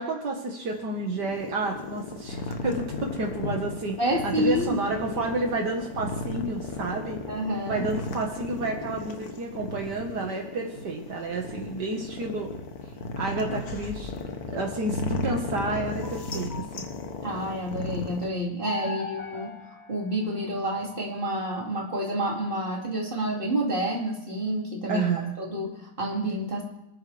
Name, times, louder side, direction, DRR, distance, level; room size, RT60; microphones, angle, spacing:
voice 1, 0.0-4.0 4.2-7.2 7.7-12.5 13.2-16.9 18.9-19.0 24.9-25.4, right 2 dB, 70° right, 1 dB, 2.2 m, -30 dB
sound 1, 0.6-18.3, left 3 dB, 60° left, 1.6 m, -35 dB
voice 2, 4.0-4.8 7.3-7.9 17.2-19.5 19.9-26.6, right 1 dB, 30° right, -2 dB, 2.9 m, -29 dB
sound 2, 15.3-17.4 18.6-20.9, left 5 dB, 35° left, 2.3 m, -41 dB
28.5 x 9.4 x 3.4 m, 0.89 s
omnidirectional pair, 1.9 m